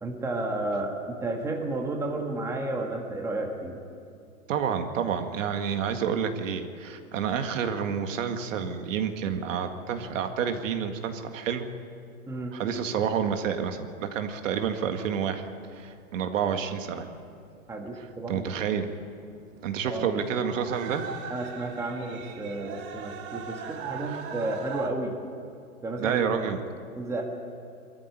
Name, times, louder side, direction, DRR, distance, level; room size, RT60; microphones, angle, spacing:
voice 1, 0.0-3.8 12.3-12.6 17.7-18.7 19.8-20.1 21.3-25.1 25.8-26.5 27.0-27.2, right 2 dB, 5° right, 1 dB, 1.8 m, -32 dB
voice 2, 4.5-11.7 12.5-15.4 15.7-17.1 18.3-18.9 19.6-21.1 26.0-26.6, right 7 dB, 60° right, 6 dB, 2.0 m, -29 dB
sound 1, 14.6-24.9, right 7 dB, 25° right, 1.5 m, -41 dB
23.0 x 14.0 x 9.6 m, 2.4 s
hypercardioid pair, 150°, 43 cm